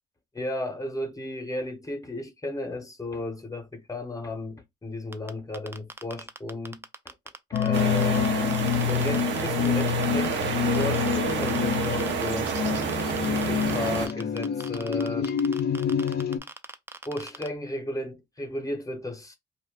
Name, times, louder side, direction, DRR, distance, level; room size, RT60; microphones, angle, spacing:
voice 1, 0.3-7.1 7.5-8.4 8.8-12.9 13.3-15.3 17.1-19.3, left 1 dB, 15° left, 0.7 m, -34 dB
sound 1, 5.1-8.3 8.5-10.4 10.7-17.5, right 3 dB, 10° right, 0.3 m, -40 dB
sound 2, 7.5-16.4, left 7 dB, 55° left, 0.4 m, -27 dB
sound 3, 7.7-14.1, right 6 dB, 70° right, 0.6 m, -29 dB
2.2 x 2.1 x 3.3 m
cardioid pair, 90°, 20 cm